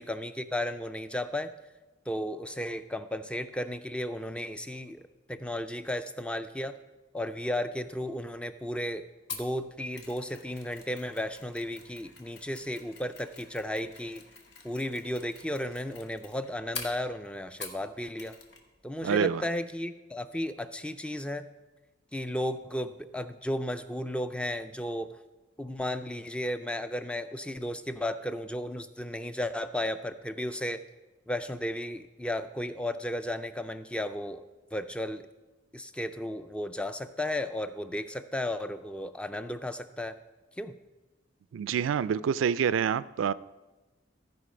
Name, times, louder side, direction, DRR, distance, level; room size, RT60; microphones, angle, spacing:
voice 1, 0.0-1.5 2.1-6.8 7.1-9.0 9.3-14.2 14.6-18.3 18.8-21.4 22.1-25.1 25.6-30.8 31.3-34.4 34.7-35.2 35.7-40.2 40.6-40.7, left 1 dB, 5° left, 10 dB, 0.3 m, -34 dB
Mechanisms, 9.3-17.9 18.2-18.6 18.9-19.0, left 4 dB, 55° left, 1.2 m, -46 dB
voice 2, 19.0-19.4 41.5-43.3, right 7 dB, 85° right, 18 dB, 0.3 m, -27 dB
14.5 x 4.9 x 5.1 m, 1.1 s
head